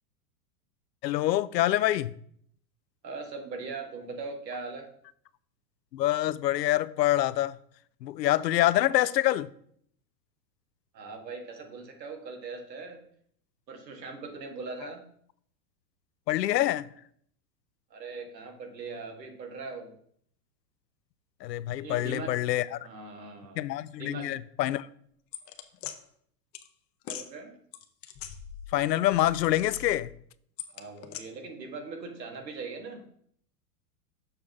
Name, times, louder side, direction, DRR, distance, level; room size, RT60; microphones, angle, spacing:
voice 1, 1.0-2.1 5.9-7.6 8.0-9.5 16.3-16.9 21.4-22.8 23.6-24.9 28.7-30.1, left 14 dB, 85° left, 0.6 m, -26 dB
voice 2, 3.0-4.9 10.9-13.0 13.7-15.0 17.9-20.0 21.8-22.3 22.8-23.7 24.0-24.4 27.1-27.5 30.7-33.0, right 4 dB, 90° right, 1.7 m, -40 dB
sound 1, 25.3-26.0 26.5-26.7 27.0-27.3 27.7-28.8 29.1-30.1 30.6-31.2, left 10 dB, 30° left, 0.6 m, -41 dB
6.8 x 5.5 x 3.5 m
hypercardioid pair, 115°, 49 cm